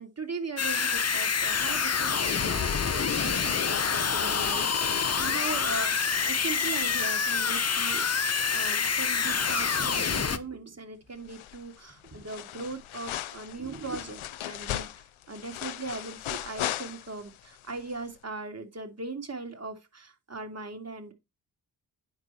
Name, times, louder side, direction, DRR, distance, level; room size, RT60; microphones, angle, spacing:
voice 1, 0.0-21.1, right 3 dB, 30° right, 2.9 m, -39 dB
sound 1, 0.6-10.4, left 6 dB, 30° left, 1.0 m, -27 dB
sound 2, 11.3-11.8 12.0-17.4 17.7-17.8, left 13 dB, 80° left, 0.9 m, -37 dB
9.5 x 6.0 x 4.4 m
supercardioid pair, 50°, 48 cm